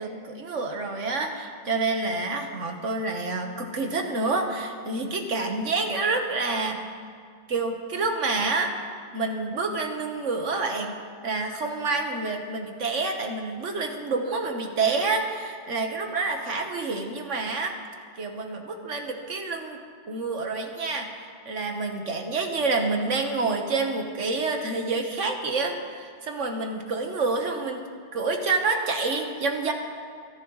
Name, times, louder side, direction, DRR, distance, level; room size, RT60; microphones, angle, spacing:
voice 1, 0.0-6.8 7.5-8.7 9.1-10.9 11.2-17.7 18.2-19.8 20.1-27.8 28.1-29.7, right 3 dB, 90° right, 3 dB, 1.7 m, -28 dB
26.0 x 11.0 x 3.2 m, 2.1 s
omnidirectional pair, 1.2 m